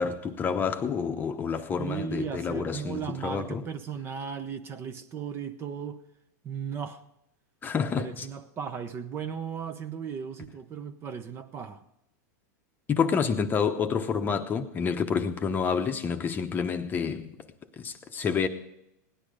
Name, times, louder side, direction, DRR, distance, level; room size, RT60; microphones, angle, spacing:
voice 1, 0.0-3.6 7.6-8.3 12.9-17.3 17.8-18.5, left 6 dB, 20° left, 0.9 m, -28 dB
voice 2, 1.8-6.0 6.4-7.0 8.0-11.8, right 7 dB, 25° right, 0.8 m, -36 dB
17.5 x 10.5 x 5.2 m
supercardioid pair, 140°, 10 cm